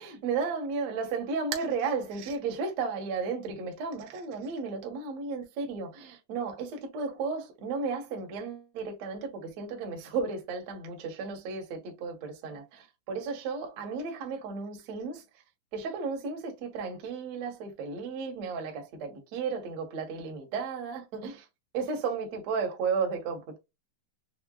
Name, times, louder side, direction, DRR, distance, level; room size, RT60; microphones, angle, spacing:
voice 1, 0.0-15.2 15.7-21.5 21.7-23.6, right 5 dB, 65° right, 1.8 m, -34 dB
6.2 x 2.2 x 2.3 m
omnidirectional pair, 4.3 m